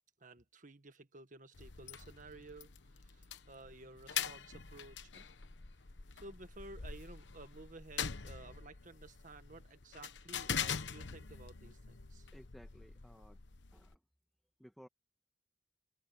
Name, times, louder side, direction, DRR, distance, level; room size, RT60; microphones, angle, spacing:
voice 1, 0.2-5.3 6.1-12.3, right 2 dB, 45° right, 1.6 m, -54 dB
sound 1, 1.5-13.9, left 7 dB, 85° left, 1.1 m, -44 dB
voice 2, 12.3-13.4 13.7-14.0 14.6-14.9, equal, ahead, 2.0 m, -58 dB
head